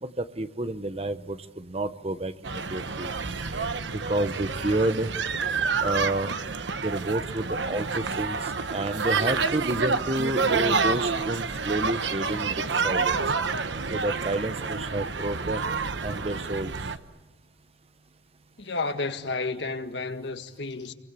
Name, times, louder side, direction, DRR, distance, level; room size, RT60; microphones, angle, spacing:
voice 1, 0.0-3.1 3.4-5.1 5.8-6.3 6.8-13.2 13.9-15.7 16.0-16.7, right 1 dB, 30° right, 0.9 m, -30 dB
sound 1, 2.4-17.0, right 4 dB, 75° right, 1.2 m, -28 dB
voice 2, 18.6-20.9, left 3 dB, 65° left, 1.8 m, -31 dB
30.0 x 23.0 x 8.3 m
head